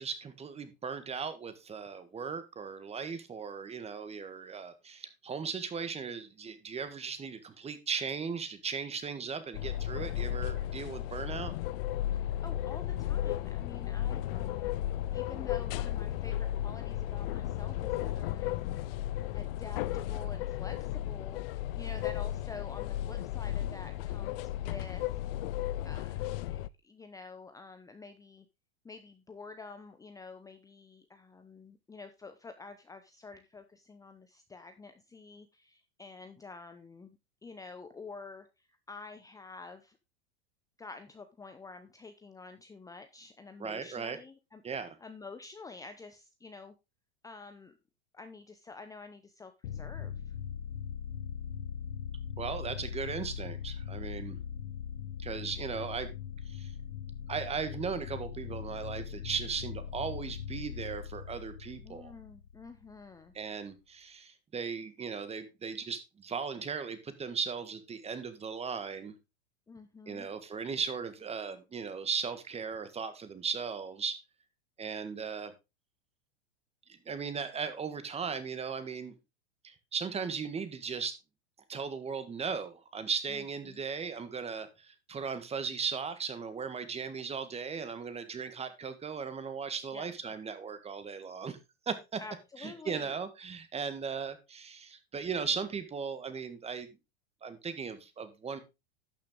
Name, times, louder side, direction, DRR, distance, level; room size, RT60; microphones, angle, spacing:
voice 1, 0.0-11.5 43.6-44.2 44.6-45.0 52.4-54.4 55.2-56.1 56.5-56.7 57.3-62.1 63.3-69.1 70.1-74.2 74.8-75.5 76.9-79.1 79.6-81.2 81.7-91.6 91.8-92.2 92.6-96.9 97.4-98.6, right 6 dB, 20° right, 11 dB, 1.6 m, -37 dB
sound 1, 9.5-26.7, left 13 dB, 60° left, 0.5 m, -34 dB
voice 2, 12.1-18.8 19.3-25.2 25.8-28.5 28.8-38.5 38.9-40.0 40.8-44.6 45.0-46.7 47.2-47.7 48.1-50.3 61.8-63.3 69.7-70.3 83.3-83.8 89.9-90.1 92.2-93.2, left 4 dB, 10° left, 8 dB, 0.8 m, -49 dB
sound 2, 49.6-63.1, left 8 dB, 80° left, 1.0 m, -40 dB
11.5 x 6.6 x 3.8 m, 0.25 s
hypercardioid pair, 115°, 32 cm